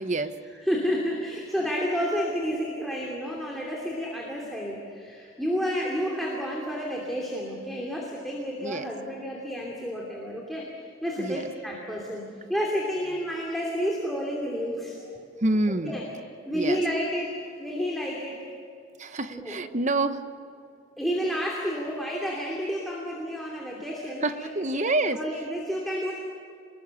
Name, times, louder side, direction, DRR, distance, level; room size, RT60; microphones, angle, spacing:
voice 1, 0.0-0.3 8.6-8.8 11.2-11.4 15.4-16.0 16.5-16.8 19.0-20.2 24.2-25.2, right 2 dB, 35° right, 9 dB, 1.0 m, -27 dB
voice 2, 0.5-10.7 11.0-12.2 12.5-15.0 15.8-16.0 16.4-18.4 19.3-19.6 21.0-26.1, equal, ahead, -3 dB, 2.8 m, -30 dB
26.5 x 21.0 x 7.2 m, 2.5 s
head